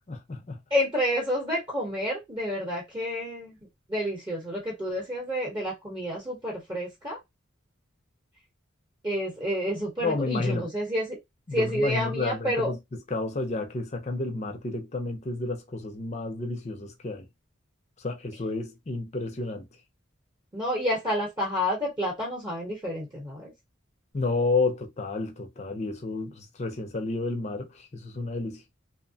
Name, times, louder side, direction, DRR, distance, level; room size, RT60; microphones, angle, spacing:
voice 1, 0.1-0.6 10.0-10.7 11.5-17.3 18.0-19.7 24.1-28.6, left 3 dB, 35° left, 0.5 m, -31 dB
voice 2, 0.7-3.6 3.9-7.2 9.0-11.2 11.5-12.7 20.5-23.5, equal, 20° right, 0.9 m, -29 dB
2.8 x 2.0 x 2.7 m
head